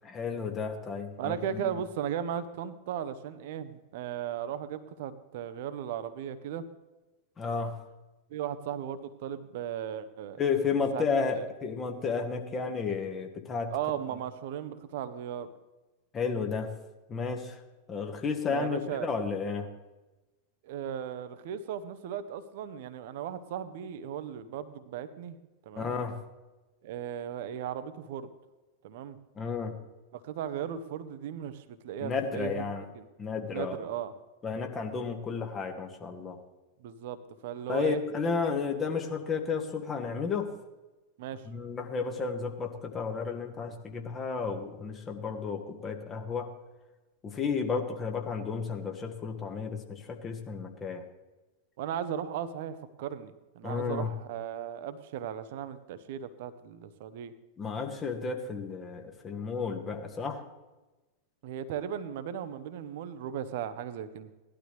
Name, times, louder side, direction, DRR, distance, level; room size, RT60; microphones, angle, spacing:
voice 1, 0.0-1.7 7.4-7.7 10.4-13.7 16.1-16.7 17.1-17.6 17.9-19.7 25.7-26.2 29.3-29.7 32.0-32.9 33.2-33.8 34.4-36.4 37.7-40.5 41.4-46.5 47.2-51.0 53.6-54.1 57.6-60.5, left 5 dB, 25° left, 4 dB, 1.6 m, -32 dB
voice 2, 1.2-6.6 8.3-10.4 10.9-11.4 13.7-15.5 18.5-19.1 20.6-25.4 25.7-25.9 26.8-28.3 28.8-29.2 30.1-32.6 32.9-33.1 33.5-34.1 36.8-38.0 41.2-41.4 51.8-57.3 61.4-64.3, right 9 dB, 50° right, 12 dB, 0.9 m, -36 dB
18.0 x 12.0 x 3.3 m, 1.1 s
figure-of-eight pair, 90°, 0 cm